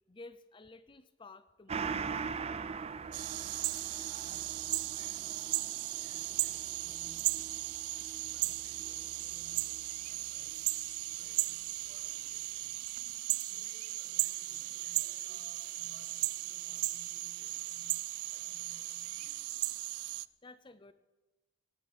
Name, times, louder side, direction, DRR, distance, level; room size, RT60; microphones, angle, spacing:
voice 1, 0.1-2.1 13.3-13.4 20.4-20.9, left 3 dB, 20° left, 13 dB, 0.5 m, -53 dB
Gong, 1.7-10.7 11.0-11.1, right 5 dB, 25° right, 0.5 m, -43 dB
sound 1, 3.1-20.3, right 19 dB, 85° right, 0.4 m, -36 dB
voice 2, 3.3-7.6 8.3-12.9 13.4-19.7, equal, 65° right, -3 dB, 6.6 m, -62 dB
18.0 x 7.5 x 8.5 m, 1.1 s
head